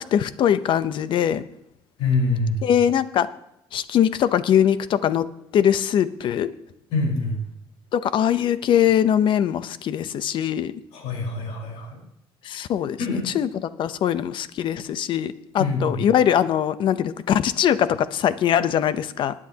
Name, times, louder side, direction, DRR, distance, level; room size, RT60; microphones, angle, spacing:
voice 1, 0.0-1.4 2.6-3.3 3.7-6.5 7.9-10.7 12.4-13.5 13.8-19.3, left 9 dB, 55° left, 14 dB, 0.8 m, -22 dB
voice 2, 2.0-2.6 6.9-7.4 10.9-12.0 13.0-13.3 15.6-16.0, left 3 dB, 90° left, 0 dB, 4.7 m, -25 dB
19.5 x 9.9 x 2.9 m, 0.83 s
cardioid pair, 125°, 10 cm